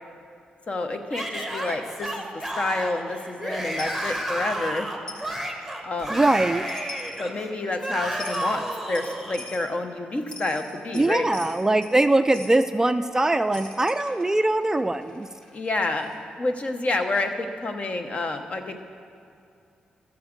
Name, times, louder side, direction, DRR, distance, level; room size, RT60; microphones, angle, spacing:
voice 1, 0.7-4.9 5.8-6.2 7.2-11.3 15.5-18.8, left 2 dB, 40° left, 6 dB, 0.9 m, -29 dB
Yell / Screaming, 1.1-9.4, right 1 dB, ahead, 1.3 m, -32 dB
Coin (dropping), 3.8-4.0 5.1-5.3 6.4-6.5 6.7-7.2 8.2-8.5 8.9-9.7 10.2-12.0 12.3-12.6 13.5-16.2, left 2 dB, 20° left, 1.7 m, -42 dB
voice 2, 6.1-6.6 10.9-15.3, right 2 dB, 15° right, 10 dB, 0.3 m, -22 dB
13.5 x 7.1 x 5.2 m, 2.5 s
cardioid pair, 75°, 3 cm